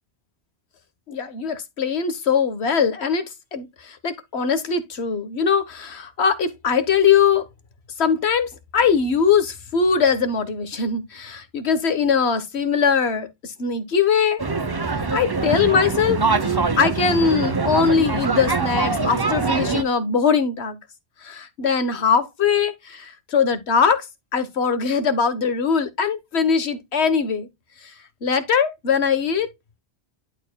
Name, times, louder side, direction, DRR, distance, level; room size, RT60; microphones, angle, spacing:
voice 1, 1.1-7.5 8.0-14.4 14.9-20.8 21.2-24.1 24.3-27.5 27.8-27.9 28.2-29.5, left 6 dB, 80° left, 1.5 m, -21 dB
sound 1, 14.4-19.8, right 4 dB, 25° right, 0.7 m, -23 dB
11.5 x 4.4 x 2.2 m
omnidirectional pair, 1.1 m